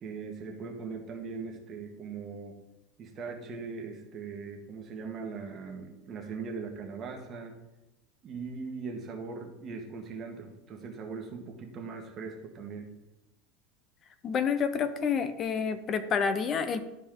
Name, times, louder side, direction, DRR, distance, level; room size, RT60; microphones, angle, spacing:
voice 1, 0.0-2.5 3.0-7.5 8.2-12.9, right 5 dB, 35° right, 2 dB, 1.4 m, -40 dB
voice 2, 14.2-16.8, left 6 dB, 30° left, 11 dB, 0.6 m, -28 dB
12.0 x 4.2 x 3.8 m, 0.96 s
supercardioid pair, 140°, 0 cm